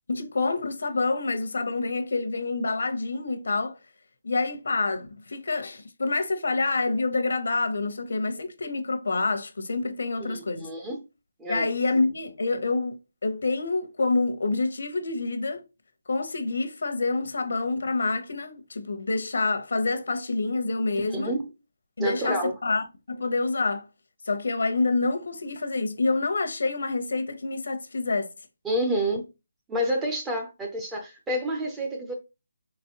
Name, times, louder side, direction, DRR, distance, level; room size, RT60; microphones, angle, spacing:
voice 1, 0.1-3.8 4.2-10.7 11.5-13.0 13.2-15.6 16.1-21.3 22.0-23.9 24.2-28.3, left 3 dB, 70° left, 0.8 m, -27 dB
voice 2, 10.3-11.0 11.4-11.7 20.9-21.4 22.0-22.5 28.6-29.2 29.7-32.1, right 1 dB, 5° right, 0.6 m, -29 dB
4.1 x 3.1 x 2.8 m
hypercardioid pair, 175°, 0 cm